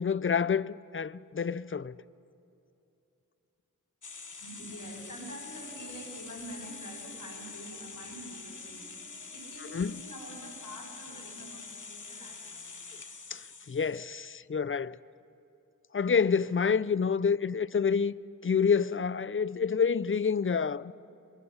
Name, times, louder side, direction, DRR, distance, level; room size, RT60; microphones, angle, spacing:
voice 1, 0.0-1.9 9.7-9.9 13.3-15.0 15.9-18.1 18.4-20.9, left 6 dB, 40° left, 0.5 m, -28 dB
sound 1, 4.0-14.0, left 4 dB, 65° left, 1.2 m, -45 dB
voice 2, 4.4-12.8, right 1 dB, 90° left, 5.0 m, -46 dB
24.0 x 22.5 x 5.6 m
wide cardioid pair, 40°, 33 cm